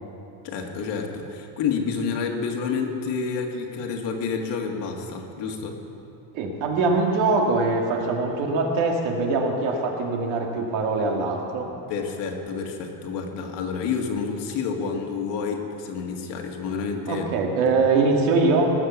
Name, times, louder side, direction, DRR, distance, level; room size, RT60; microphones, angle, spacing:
voice 1, 0.4-5.8 11.9-17.3 17.7-17.8, left 5 dB, 65° left, 2 dB, 1.8 m, -29 dB
voice 2, 6.3-11.7 17.1-18.7, right 3 dB, 85° right, 1 dB, 2.2 m, -23 dB
19.0 x 6.8 x 7.1 m, 2.9 s
cardioid pair, 165°, 45 cm